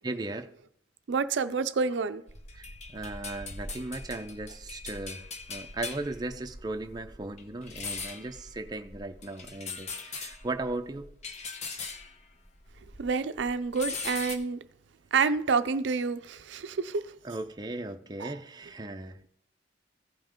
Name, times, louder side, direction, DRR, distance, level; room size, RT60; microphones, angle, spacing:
voice 1, 0.0-0.5 2.5-11.1 17.2-19.3, right 2 dB, 20° right, 0.5 m, -37 dB
voice 2, 1.1-2.2 13.0-14.6 15.1-17.1 18.2-18.3, right 5 dB, 70° right, 0.5 m, -28 dB
sound 1, 2.3-13.1 13.4-14.4, left 4 dB, 40° left, 0.9 m, -41 dB
15.5 x 5.6 x 3.6 m
head